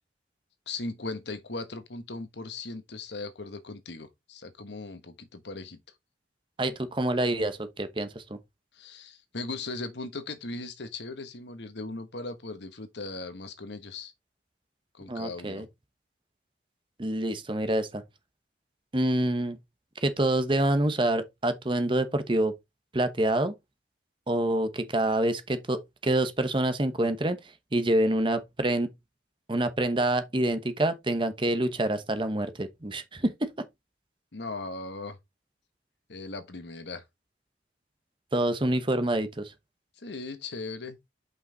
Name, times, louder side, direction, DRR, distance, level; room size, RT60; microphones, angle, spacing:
voice 1, 0.7-5.8 8.7-14.1 14.9-15.7 34.3-35.2 36.1-37.0 40.0-41.0, left 3 dB, 70° left, 1.2 m, -38 dB
voice 2, 6.6-8.4 15.1-15.6 17.0-18.0 18.9-19.6 20.0-22.5 22.9-23.5 24.3-27.4 27.7-28.9 29.5-33.6 38.3-39.5, right 1 dB, 25° right, 0.9 m, -27 dB
5.7 x 5.6 x 3.9 m
head